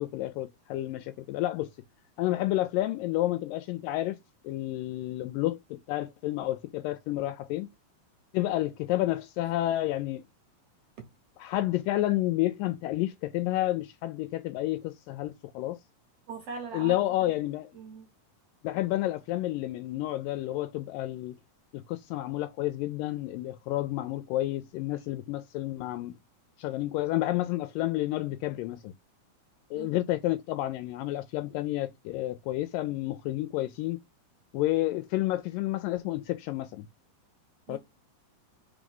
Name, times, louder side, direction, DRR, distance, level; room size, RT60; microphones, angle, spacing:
voice 1, 0.0-1.7 2.2-4.2 4.4-7.7 8.3-10.2 11.4-15.8 16.7-17.7 18.6-21.4 21.7-26.2 26.6-28.9 29.7-34.0 34.5-36.9 37.7-37.8, left 15 dB, 80° left, 2.1 m, -30 dB
voice 2, 16.3-17.0 17.7-18.1 29.7-29.9 37.7-37.8, right 4 dB, 70° right, 1.5 m, -39 dB
4.8 x 3.8 x 5.3 m
omnidirectional pair, 4.2 m